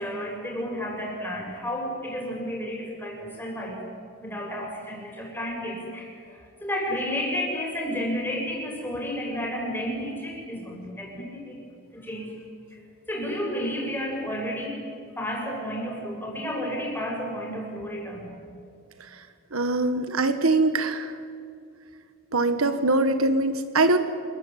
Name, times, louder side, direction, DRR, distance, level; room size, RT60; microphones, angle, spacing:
voice 1, 0.0-3.8 4.2-11.6 11.9-12.3 13.1-14.8 15.2-18.3, equal, 10° left, -1 dB, 7.0 m, -31 dB
voice 2, 19.5-21.1 22.3-24.0, right 2 dB, 70° right, 9 dB, 1.6 m, -22 dB
27.5 x 22.0 x 9.3 m, 2.3 s
head